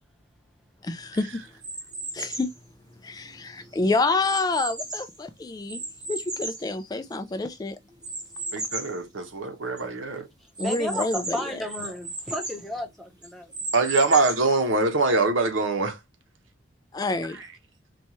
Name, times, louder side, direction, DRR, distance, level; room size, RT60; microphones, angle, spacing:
voice 1, 0.8-1.4 2.1-2.5 3.0-5.8 6.1-7.8 10.6-11.4 16.9-17.4, left 3 dB, 20° left, 0.3 m, -28 dB
sound 1, 1.6-2.6 3.2-5.2 5.7-7.4 8.0-9.0 9.4-9.5 9.8-9.9 10.6-12.6 13.2-14.6, right 2 dB, 20° right, 1.1 m, -35 dB
voice 2, 8.5-10.3 13.7-16.0, right 3 dB, 90° right, 0.9 m, -23 dB
voice 3, 10.6-13.5, left 1 dB, ahead, 0.8 m, -33 dB
4.2 x 2.3 x 3.0 m
head